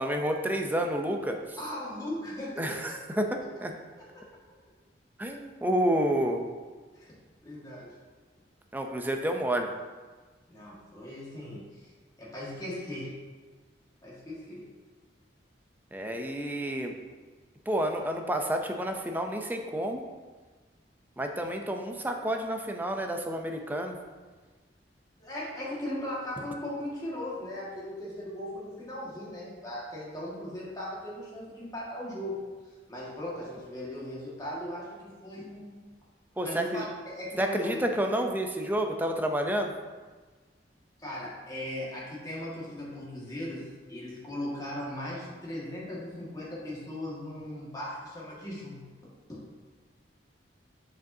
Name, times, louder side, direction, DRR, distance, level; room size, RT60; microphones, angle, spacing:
voice 1, 0.0-1.6 2.6-3.7 5.2-6.5 8.7-9.7 15.9-16.9 17.7-20.0 21.2-24.0 36.4-36.8 37.4-39.7, right 1 dB, 10° right, 4 dB, 0.5 m, -29 dB
voice 2, 1.6-3.0 3.4-3.5 4.0-4.2 6.9-7.1 7.4-7.9 10.5-11.9 12.2-13.1 14.0-14.6 25.2-32.4 32.9-35.8 36.4-37.8 41.0-48.8 49.3-49.4, left 1 dB, 20° left, -6 dB, 1.7 m, -38 dB
7.3 x 5.1 x 2.7 m, 1.4 s
head